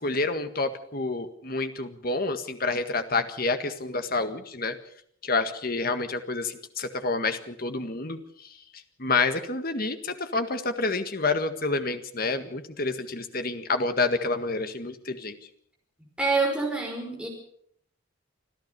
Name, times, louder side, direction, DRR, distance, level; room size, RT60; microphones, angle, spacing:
voice 1, 0.0-4.8 5.2-8.2 9.0-15.4, left 3 dB, 45° left, 8 dB, 1.8 m, -28 dB
voice 2, 16.2-17.3, right 3 dB, 5° right, 0 dB, 5.2 m, -26 dB
26.0 x 14.5 x 7.0 m, 0.66 s
head